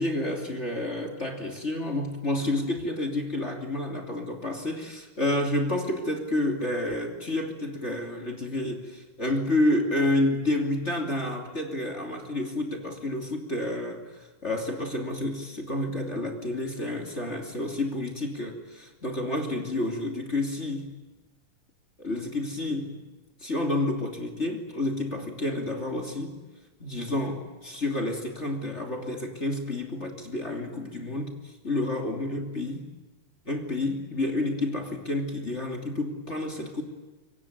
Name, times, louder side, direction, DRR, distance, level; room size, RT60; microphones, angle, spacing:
voice 1, 0.0-20.9 22.0-23.0 23.4-26.4 26.8-32.9 33.4-36.8, left 1 dB, 20° left, 2 dB, 2.7 m, -29 dB
26.0 x 23.5 x 9.2 m, 1.2 s
omnidirectional pair, 3.9 m